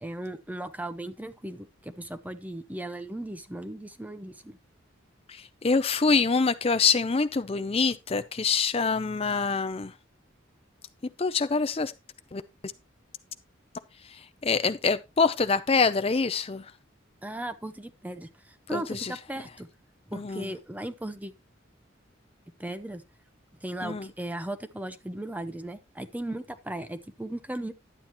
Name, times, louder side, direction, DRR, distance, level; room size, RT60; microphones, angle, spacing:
voice 1, 0.0-4.6 17.2-19.7 20.1-21.3 22.6-23.0 23.6-27.7, right 1 dB, 10° right, 0.7 m, -37 dB
voice 2, 5.3-9.9 11.2-11.9 12.3-12.4 14.4-16.6 18.7-19.1 20.1-20.5 23.8-24.1, left 4 dB, 30° left, 0.5 m, -25 dB
11.5 x 8.8 x 3.0 m
head